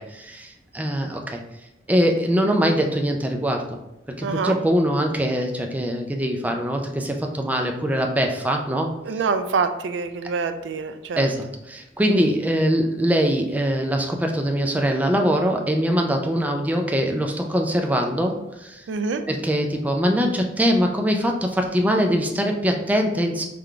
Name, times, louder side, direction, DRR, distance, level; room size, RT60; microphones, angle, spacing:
voice 1, 0.0-1.4 1.9-3.8 4.2-8.9 11.2-18.9 19.3-23.4, equal, 10° right, 3 dB, 0.3 m, -22 dB
voice 2, 4.2-4.6 9.0-11.2 18.9-19.2, right 5 dB, 90° right, 9 dB, 0.4 m, -25 dB
3.8 x 3.3 x 3.4 m, 0.93 s
head